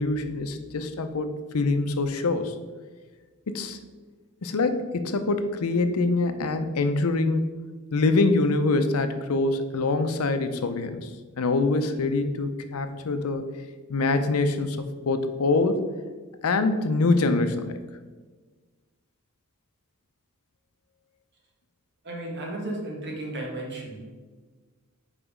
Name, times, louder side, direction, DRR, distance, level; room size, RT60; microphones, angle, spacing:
voice 1, 0.0-2.5 3.5-3.8 4.4-7.4 7.9-11.1 11.4-13.4 13.9-14.8 15.1-15.9 16.4-17.8, left 3 dB, 90° left, 9 dB, 0.6 m, -24 dB
voice 2, 22.0-24.0, right 1 dB, 55° right, -1 dB, 1.5 m, -34 dB
5.0 x 4.8 x 4.9 m, 1.4 s
head